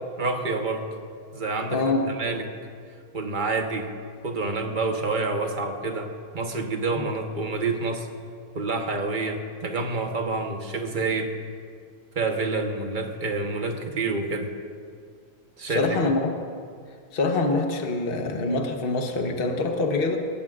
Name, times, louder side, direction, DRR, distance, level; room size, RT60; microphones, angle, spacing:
voice 1, 0.2-0.9 1.3-2.5 3.1-3.9 4.2-8.1 8.5-11.3 12.1-14.5 15.6-16.0, right 3 dB, 35° right, 4 dB, 1.1 m, -28 dB
voice 2, 1.7-2.1 6.9-7.1 15.7-16.3 17.1-20.2, left 3 dB, 40° left, 3 dB, 1.2 m, -25 dB
20.5 x 17.0 x 2.5 m, 2.2 s
omnidirectional pair, 1.8 m